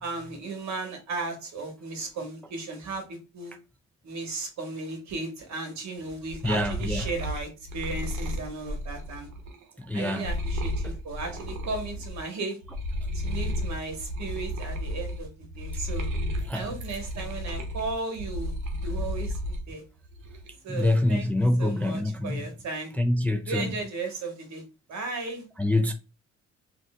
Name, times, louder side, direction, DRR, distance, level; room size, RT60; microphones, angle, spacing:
voice 1, 0.0-3.5 4.0-9.3 9.9-12.6 13.1-15.3 15.5-16.1 16.5-18.5 18.8-19.8 20.6-21.3 21.6-22.9 23.5-24.6 24.9-25.4, right 3 dB, 65° right, 1.2 m, -35 dB
sound 1, 6.1-12.3 12.6-19.6 20.0-20.7, equal, 85° right, 0.8 m, -33 dB
voice 2, 6.4-7.1 9.8-10.3 10.8-11.0 16.5-16.7 20.7-22.4 23.0-23.7 25.6-25.9, left 1 dB, 5° left, 0.3 m, -26 dB
3.6 x 2.5 x 2.2 m
cardioid pair, 90°, 30 cm